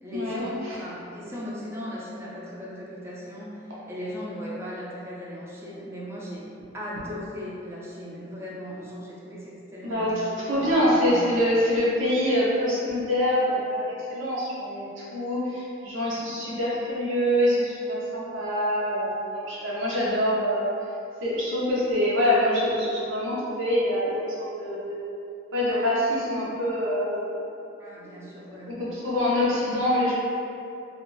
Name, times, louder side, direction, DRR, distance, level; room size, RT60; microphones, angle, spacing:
voice 1, 0.0-6.4 6.7-11.1 27.8-28.7, equal, 15° right, -6 dB, 0.5 m, -37 dB
voice 2, 9.8-20.7 21.2-25.1 25.5-27.4 28.7-30.1, left 1 dB, 85° right, -7 dB, 0.8 m, -25 dB
2.4 x 2.4 x 3.1 m, 2.7 s
head